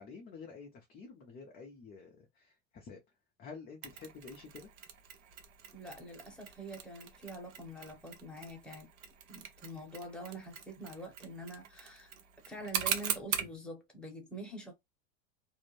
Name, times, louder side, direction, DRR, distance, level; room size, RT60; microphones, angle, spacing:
voice 1, 0.0-3.0 3.4-4.7, left 5 dB, 25° left, 0.5 m, -49 dB
Mechanisms, 3.8-13.6, right 9 dB, 65° right, 0.9 m, -41 dB
voice 2, 5.7-8.9 9.3-12.1 12.4-14.7, right 1 dB, ahead, 0.9 m, -45 dB
2.6 x 2.1 x 3.1 m
supercardioid pair, 125°, 40 cm